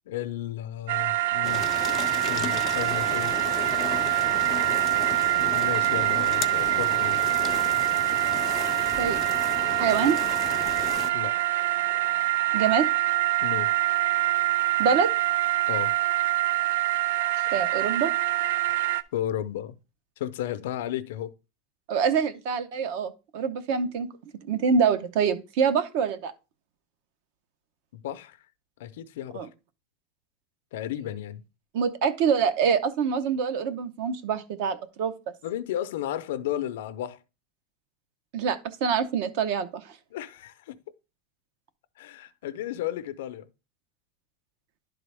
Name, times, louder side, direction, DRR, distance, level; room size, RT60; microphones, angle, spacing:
voice 1, 0.1-1.7 2.3-3.4 5.4-7.2 11.0-11.4 13.4-13.7 15.7-15.9 17.5-17.7 19.1-19.8 20.2-21.3 27.9-28.4 28.8-29.5 30.7-31.4 35.4-37.2 40.1-40.8 42.0-43.5, left 11 dB, 85° left, 0.5 m, -33 dB
sound 1, 0.9-19.0, right 15 dB, 85° right, 0.4 m, -25 dB
sound 2, 1.4-11.1, left 10 dB, 30° left, 0.3 m, -35 dB
voice 2, 9.8-10.2 12.5-12.9 14.8-15.1 17.5-18.1 21.9-24.1 24.4-26.3 29.3-29.5 31.7-35.1 38.3-39.9, right 6 dB, 55° right, 0.7 m, -25 dB
11.0 x 3.9 x 3.4 m
supercardioid pair, 170°, 0 cm